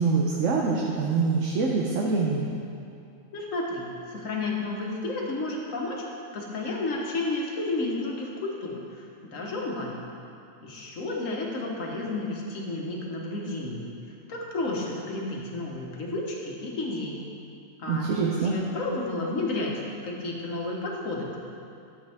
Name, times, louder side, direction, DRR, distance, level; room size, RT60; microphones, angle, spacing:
voice 1, 0.0-2.5 17.9-18.6, right 4 dB, 70° right, -1 dB, 1.1 m, -25 dB
voice 2, 3.3-6.0 6.3-10.0 10.6-13.9 14.3-17.3 17.8-21.4, left 2 dB, 75° left, -1 dB, 1.6 m, -32 dB
12.0 x 7.4 x 3.5 m, 2.6 s
omnidirectional pair, 1.4 m